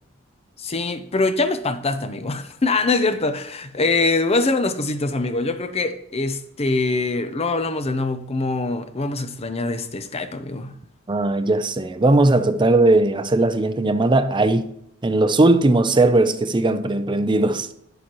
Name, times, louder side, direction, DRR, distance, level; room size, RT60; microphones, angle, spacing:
voice 1, 0.6-10.7, left 3 dB, 30° left, 0.6 m, -23 dB
voice 2, 11.1-14.7 15.0-17.7, right 2 dB, 25° right, 0.5 m, -18 dB
11.0 x 6.9 x 3.0 m
head